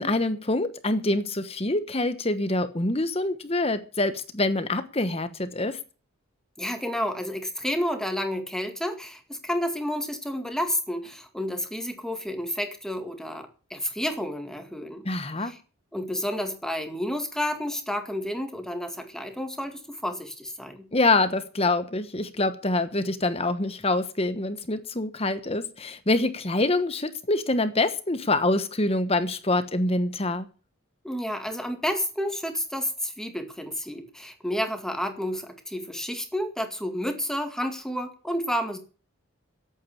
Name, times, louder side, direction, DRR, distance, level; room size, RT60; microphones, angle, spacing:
voice 1, 0.0-5.8 15.0-15.5 20.9-30.5, left 2 dB, 25° left, 1.1 m, -25 dB
voice 2, 6.6-15.0 15.4-15.6 15.9-20.9 31.0-38.8, equal, ahead, 2.1 m, -30 dB
12.5 x 8.7 x 8.5 m
head